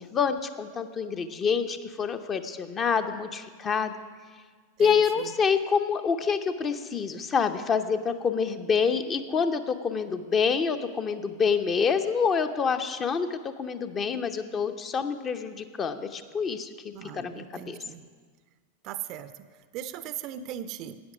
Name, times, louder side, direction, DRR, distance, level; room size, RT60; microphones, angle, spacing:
voice 1, 0.0-3.9 4.8-17.8, left 6 dB, 25° left, 8 dB, 0.8 m, -27 dB
voice 2, 4.8-5.3 16.9-18.0 18.8-19.3 19.7-21.0, right 10 dB, 40° right, 13 dB, 0.6 m, -38 dB
13.5 x 9.6 x 6.1 m, 1.5 s
figure-of-eight pair, 90°, 0 cm